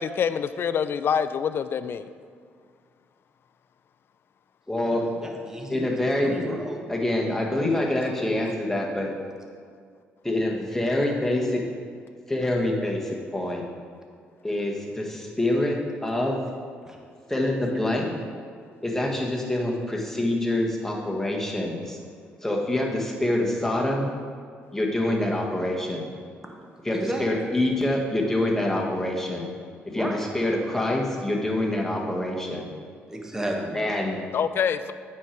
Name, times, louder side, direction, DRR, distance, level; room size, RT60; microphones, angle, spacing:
voice 1, 0.0-2.1 8.2-8.3 34.3-34.9, left 7 dB, 55° left, 13 dB, 0.4 m, -26 dB
voice 2, 4.7-5.0 5.7-6.4 6.9-9.1 10.2-11.6 12.3-13.6 14.4-16.4 17.3-18.1 18.8-22.0 22.4-24.1 24.7-26.1 26.8-29.5 29.9-32.7 33.7-34.2, left 1 dB, 10° left, -1 dB, 1.4 m, -26 dB
voice 3, 5.2-5.9 6.2-6.8 16.9-17.0 26.9-27.2 29.9-30.2 33.1-33.8, right 1 dB, 10° right, 0 dB, 1.2 m, -32 dB
8.6 x 4.5 x 4.5 m, 2.1 s
supercardioid pair, 65°, 5 cm